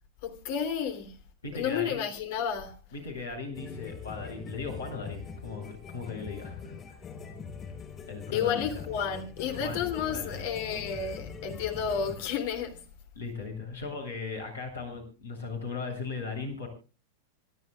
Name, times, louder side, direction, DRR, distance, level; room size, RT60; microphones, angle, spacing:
voice 1, 0.2-1.2 1.5-2.8 8.3-12.8, left 7 dB, 50° left, 3.1 m, -31 dB
voice 2, 1.4-2.0 2.9-7.0 8.1-8.9 9.5-9.8 10.1-10.5 11.0-11.1 13.2-16.7, left 4 dB, 70° left, 7.7 m, -38 dB
sound 1, 3.5-12.2, left 5 dB, 25° left, 4.3 m, -43 dB
27.0 x 13.0 x 2.4 m
figure-of-eight pair, 90°, 0 cm